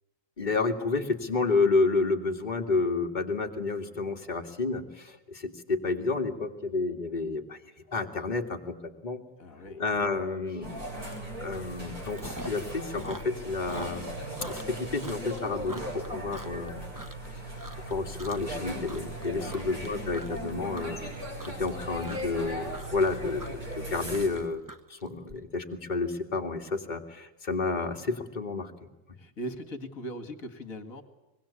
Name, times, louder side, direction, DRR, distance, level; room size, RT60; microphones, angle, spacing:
voice 1, 0.4-7.6 7.9-8.8 9.0-9.2 9.7-11.1 11.4-14.1 14.5-16.8 17.9-21.0 21.5-24.6 24.9-28.7, left 3 dB, 20° left, 3 dB, 2.2 m, -30 dB
voice 2, 9.4-9.8 19.3-19.7 29.2-31.0, equal, 40° left, 9 dB, 2.5 m, -39 dB
sound 1, 10.6-24.3, right 1 dB, 40° right, 8.4 m, -38 dB
Chewing mastication, 11.2-11.4 11.7-12.7 12.9-17.3 17.6-17.9 18.2-18.6 18.8-25.3, right 1 dB, 10° right, 1.1 m, -44 dB
24.5 x 22.5 x 8.6 m, 1.0 s
omnidirectional pair, 2.4 m